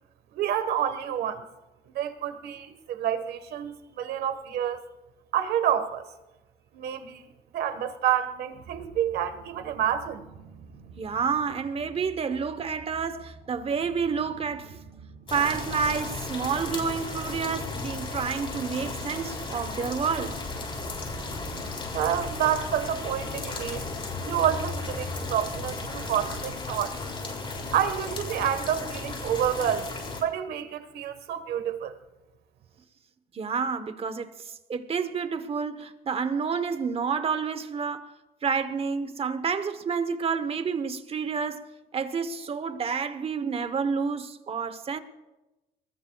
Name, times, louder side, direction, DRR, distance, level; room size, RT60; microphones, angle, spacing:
voice 1, 0.3-1.4 1.9-4.8 5.3-6.0 6.7-7.2 7.5-10.2 21.9-23.9 24.2-27.0 27.7-29.9 30.2-32.0, right 9 dB, 70° right, 1.4 m, -28 dB
sound 1, 8.5-26.4, right 4 dB, 90° right, 5.7 m, -46 dB
voice 2, 11.0-14.8 15.3-20.4 33.3-38.1 38.4-41.7 41.9-45.0, right 6 dB, 35° right, 1.0 m, -29 dB
sound 2, 15.3-30.2, left 3 dB, 30° left, 6.7 m, -35 dB
23.0 x 21.0 x 2.3 m
cardioid pair, 110°, 17 cm